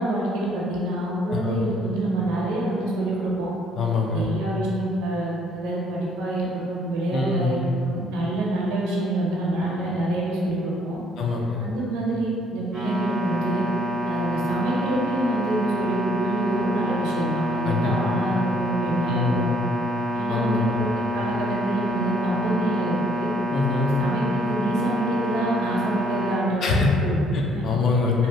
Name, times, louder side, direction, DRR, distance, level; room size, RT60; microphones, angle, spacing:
voice 1, 0.0-3.5 4.1-11.0 11.6-13.6 14.1-19.5 20.1-23.3 24.0-27.2 27.5-27.6 28.2-28.3, right 2 dB, 85° right, -4 dB, 0.5 m, -26 dB
voice 2, 1.3-1.6 3.8-4.3 7.1-7.6 11.2-11.7 17.6-17.9 19.1-19.4 20.3-20.9 23.5-23.9 26.6-26.9 27.3-28.3, left 4 dB, 65° left, -1 dB, 0.4 m, -24 dB
sound 1, 12.7-26.4, equal, 40° left, 1.1 m, -28 dB
2.7 x 2.0 x 2.7 m, 2.5 s
supercardioid pair, 70°, 0 cm